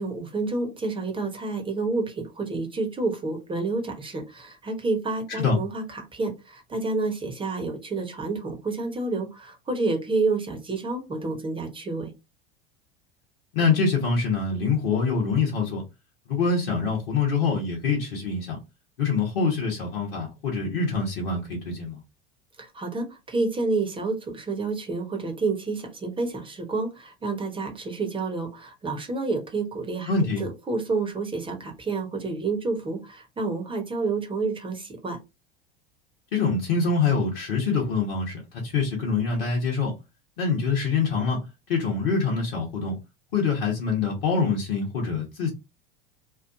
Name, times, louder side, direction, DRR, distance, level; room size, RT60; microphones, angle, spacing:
voice 1, 0.0-12.1 22.6-30.1 30.4-35.2, right 3 dB, 15° right, 1.0 m, -29 dB
voice 2, 13.5-15.8 16.3-18.6 19.0-22.0 30.1-30.4 36.3-39.9 40.4-42.9 43.3-45.5, left 4 dB, 70° left, 1.1 m, -25 dB
3.1 x 2.3 x 2.5 m
figure-of-eight pair, 80°, 29 cm